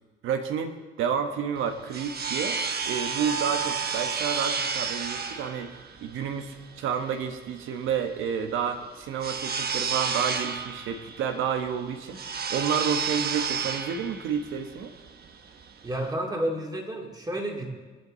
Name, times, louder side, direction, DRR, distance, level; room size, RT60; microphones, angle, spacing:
voice 1, 0.2-14.9, right 7 dB, 90° right, 7 dB, 1.4 m, -30 dB
sound 1, 1.6-16.1, right 6 dB, 55° right, 1.3 m, -32 dB
voice 2, 15.8-17.7, right 1 dB, 20° right, 1 dB, 2.9 m, -31 dB
26.5 x 9.1 x 4.0 m, 1.3 s
cardioid pair, 90°, 20 cm